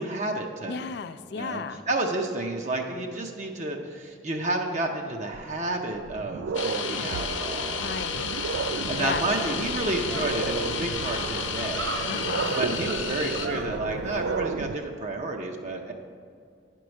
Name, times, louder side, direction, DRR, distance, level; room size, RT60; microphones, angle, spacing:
voice 1, 0.0-0.8 1.3-7.8 8.9-12.0 12.6-15.9, right 2 dB, 40° right, 2 dB, 0.6 m, -30 dB
voice 2, 0.7-1.8 7.8-8.3 9.0-9.2 12.1-12.6, left 5 dB, 60° left, 12 dB, 0.4 m, -34 dB
sound 1, 5.3-5.4 6.0-14.8, right 5 dB, 75° right, 0.3 m, -33 dB
sound 2, 6.5-13.5, left 6 dB, 90° left, 0.8 m, -32 dB
sound 3, 9.0-9.1 9.4-14.4, right 3 dB, 90° right, 1.0 m, -37 dB
9.4 x 4.6 x 6.3 m, 2.3 s
head